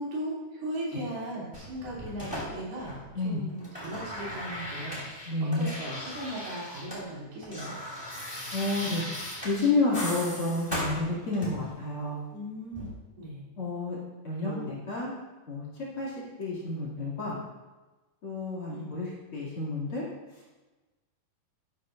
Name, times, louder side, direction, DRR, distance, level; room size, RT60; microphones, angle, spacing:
voice 1, 0.0-7.7 12.3-12.9 13.2-13.4 14.4-14.7 18.7-18.9, right 1 dB, 85° right, -6 dB, 4.9 m, -38 dB
sound 1, 1.5-3.2 3.5-7.0 7.3-11.7 12.7-12.9, left 1 dB, 5° left, 2.5 m, -38 dB
voice 2, 5.2-5.7 8.5-9.0 9.4-12.2 13.6-14.0 14.2-15.1 15.5-15.7 16.0-16.1 16.4-17.4 18.2-20.0, left 2 dB, 40° left, -5 dB, 3.0 m, -30 dB
12.5 x 12.0 x 2.5 m, 1.2 s
omnidirectional pair, 4.2 m